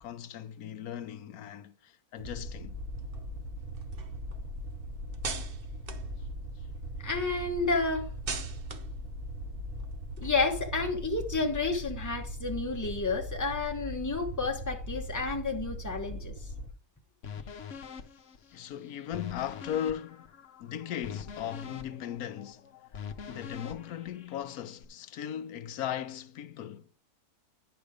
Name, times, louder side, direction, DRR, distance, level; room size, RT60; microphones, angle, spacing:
voice 1, 0.0-2.7 18.5-20.3 20.6-26.9, left 10 dB, 90° left, 1.2 m, -38 dB
sound 1, 2.2-16.7, equal, 65° right, 3.0 m, -40 dB
sound 2, 2.7-6.9 7.3-10.8, right 4 dB, 45° right, 1.0 m, -43 dB
voice 2, 7.0-8.1 10.2-16.3, left 3 dB, 15° left, 1.2 m, -30 dB
sound 3, 17.2-24.8, left 6 dB, 60° left, 1.2 m, -44 dB
10.5 x 5.8 x 5.0 m
omnidirectional pair, 1.5 m